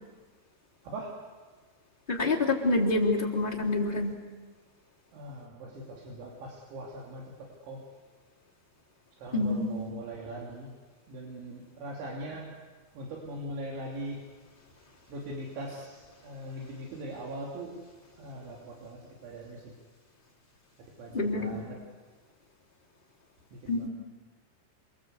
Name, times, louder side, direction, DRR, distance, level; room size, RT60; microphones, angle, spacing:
voice 1, 0.8-1.2 5.1-7.8 9.2-10.7 11.1-12.5 13.0-14.2 15.1-17.7 18.2-19.8 21.0-21.8 23.5-23.9, right 1 dB, 80° right, -2 dB, 5.3 m, -41 dB
voice 2, 2.1-4.1 9.3-9.9 21.1-21.6 23.7-23.9, left 2 dB, 10° left, -4 dB, 2.9 m, -27 dB
28.5 x 22.5 x 8.1 m, 1.4 s
omnidirectional pair, 5.3 m